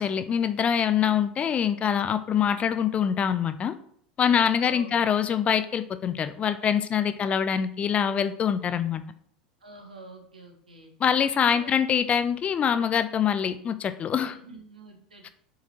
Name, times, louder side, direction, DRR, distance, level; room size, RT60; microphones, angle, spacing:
voice 1, 0.0-3.8 4.2-9.0 11.0-14.3 15.2-15.3, left 8 dB, 30° left, 12 dB, 0.5 m, -24 dB
voice 2, 4.2-5.0 7.1-7.2 9.6-10.9 11.5-11.7 14.2-15.3, right 2 dB, 80° right, 3 dB, 1.5 m, -47 dB
7.1 x 4.8 x 4.4 m, 0.63 s
figure-of-eight pair, 80°, 4 cm